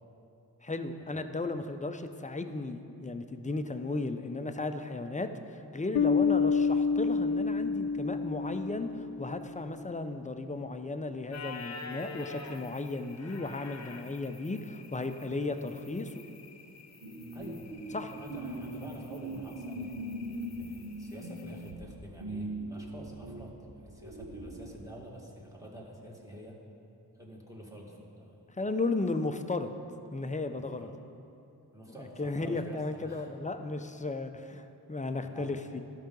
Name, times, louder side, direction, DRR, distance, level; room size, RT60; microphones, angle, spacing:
voice 1, 0.6-16.2 17.9-18.1 28.6-29.7 30.1-30.9 32.2-35.8, left 2 dB, 20° left, 8 dB, 0.6 m, -35 dB
Bass guitar, 5.9-9.4, left 5 dB, 70° left, 0.5 m, -28 dB
sound 1, 11.3-21.7, left 4 dB, 40° left, 1.0 m, -48 dB
sound 2, 17.0-24.6, right 1 dB, 90° right, 1.2 m, -40 dB
voice 2, 17.3-26.7 27.1-28.4 30.5-31.0 31.7-33.3 35.2-35.6, equal, 10° right, -3 dB, 2.1 m, -48 dB
13.0 x 5.7 x 3.9 m, 2.7 s
cardioid pair, 45°, 41 cm